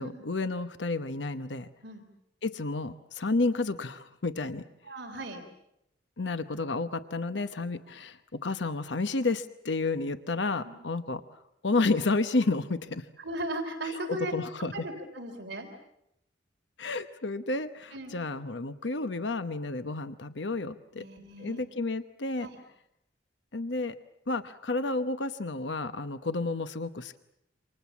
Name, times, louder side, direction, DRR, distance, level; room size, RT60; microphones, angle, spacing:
voice 1, 0.0-1.7 2.4-4.6 6.2-13.1 14.1-14.7 16.8-21.0 21.4-22.5 23.5-24.0 24.3-27.2, left 3 dB, 70° left, 11 dB, 1.0 m, -31 dB
voice 2, 4.8-5.4 10.6-10.7 13.2-14.3 14.7-15.7 17.9-18.1 21.0-21.6 22.4-22.5, right 1 dB, 60° right, 4 dB, 3.5 m, -37 dB
28.5 x 26.0 x 7.2 m, 0.80 s
head